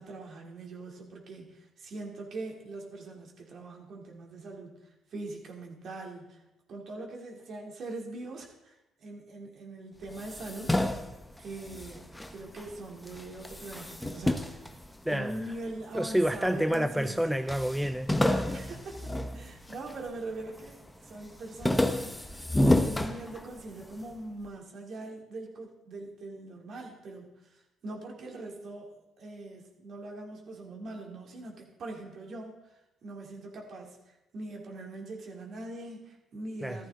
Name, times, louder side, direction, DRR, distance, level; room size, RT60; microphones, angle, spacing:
voice 1, 0.0-4.8 5.1-6.4 6.7-10.7 11.4-14.7 15.1-17.2 18.5-22.2 22.8-32.6 33.0-36.9, right 2 dB, 55° right, 0 dB, 3.5 m, -42 dB
sound 1, 10.1-12.7 13.1-15.6 16.2-16.9 17.1-17.2 17.5-20.1 20.5-20.9 21.2-23.8, left 1 dB, 10° left, 1.3 m, -30 dB
voice 2, 15.1-15.4 15.9-18.4 36.6-36.8, equal, 5° right, 9 dB, 0.7 m, -29 dB
14.0 x 13.5 x 4.0 m, 0.95 s
hypercardioid pair, 55°, 0 cm